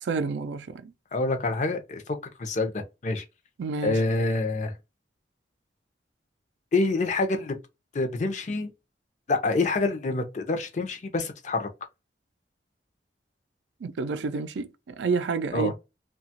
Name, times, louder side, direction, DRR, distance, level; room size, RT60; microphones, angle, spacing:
voice 1, 0.0-0.9 3.6-4.0 13.8-15.8, right 4 dB, 90° right, 0.4 m, -29 dB
voice 2, 1.1-2.0 2.4-3.2 3.8-4.7 6.7-7.6 7.9-8.7 9.3-11.7 15.5-15.7, left 3 dB, 40° left, 0.5 m, -26 dB
2.8 x 2.3 x 2.8 m
head